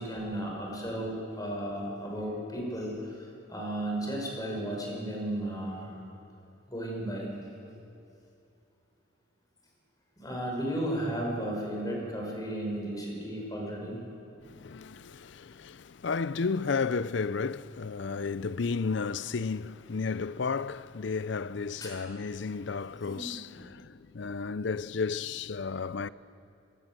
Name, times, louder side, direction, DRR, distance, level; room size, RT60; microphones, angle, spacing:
voice 1, 0.0-5.9 6.7-7.3 10.2-14.0 21.8-22.0 23.0-23.5, right 1 dB, 20° left, 5.6 m, -34 dB
voice 2, 14.4-26.1, left 4 dB, 60° left, 0.5 m, -33 dB
26.5 x 18.0 x 7.6 m
head